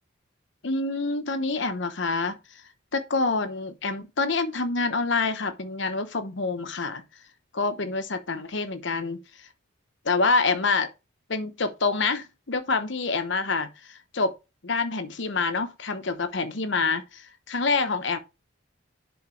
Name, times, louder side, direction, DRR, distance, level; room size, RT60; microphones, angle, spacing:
voice 1, 0.6-2.4 2.9-7.0 7.5-9.2 10.0-10.9 11.3-14.3 14.6-18.2, left 3 dB, 60° left, 0.9 m, -27 dB
10.5 x 4.0 x 3.2 m
head